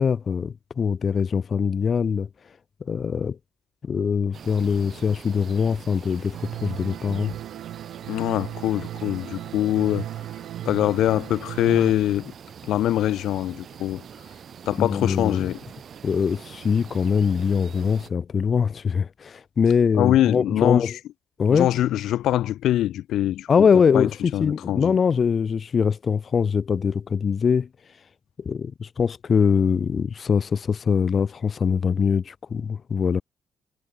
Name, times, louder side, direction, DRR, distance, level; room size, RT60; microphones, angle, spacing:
voice 1, 0.0-2.3 2.9-3.4 3.8-7.3 14.8-15.5 16.0-21.0 21.4-21.7 23.5-27.7 28.4-33.2, left 6 dB, 40° left, 0.5 m, -23 dB
sound 1, 4.3-18.1, right 8 dB, 50° right, 5.5 m, -44 dB
sound 2, 6.3-11.9, right 13 dB, 85° right, 1.1 m, -36 dB
voice 2, 8.1-10.1 10.7-12.3 12.7-14.0 14.7-15.6 19.9-20.9 21.5-23.5 23.9-25.0, left 13 dB, 85° left, 0.6 m, -23 dB
cardioid pair, 135°, 0 cm